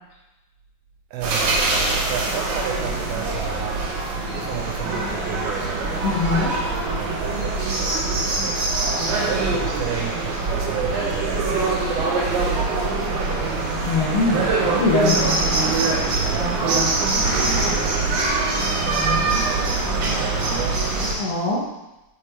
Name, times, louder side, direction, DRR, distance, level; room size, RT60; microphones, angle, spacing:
voice 1, 1.1-9.0 9.3-13.7 14.6-15.4 15.7-17.0 17.6-20.9, right 7 dB, 80° right, 1 dB, 2.3 m, -34 dB
sound 1, 1.2-21.1, right 3 dB, 65° right, 2.4 m, -23 dB
voice 2, 6.0-6.6 13.9-15.2 21.2-21.7, left 3 dB, 75° left, -2 dB, 2.4 m, -22 dB
7.7 x 3.1 x 4.2 m, 0.99 s
omnidirectional pair, 4.6 m